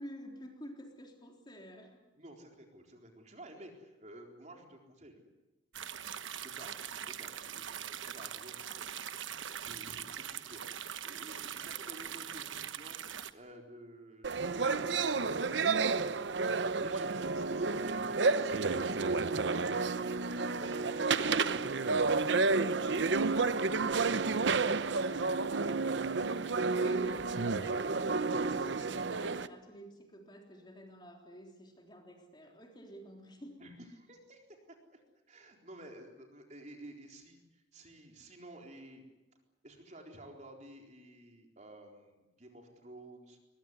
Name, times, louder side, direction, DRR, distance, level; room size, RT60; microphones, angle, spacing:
voice 1, 0.0-2.0 26.7-33.6, equal, 25° left, 2 dB, 3.6 m, -50 dB
voice 2, 2.2-5.2 6.4-9.1 9.6-10.7 11.0-13.0 13.3-16.4 16.8-25.1 33.6-34.6 34.9-35.0 35.3-39.0 39.6-43.4, right 1 dB, 40° right, 2 dB, 4.0 m, -52 dB
sound 1, 5.7-13.3, right 9 dB, 85° right, 1.2 m, -42 dB
sound 2, 14.2-29.5, right 4 dB, 70° right, 0.8 m, -31 dB
22.0 x 22.0 x 9.7 m, 1.1 s
head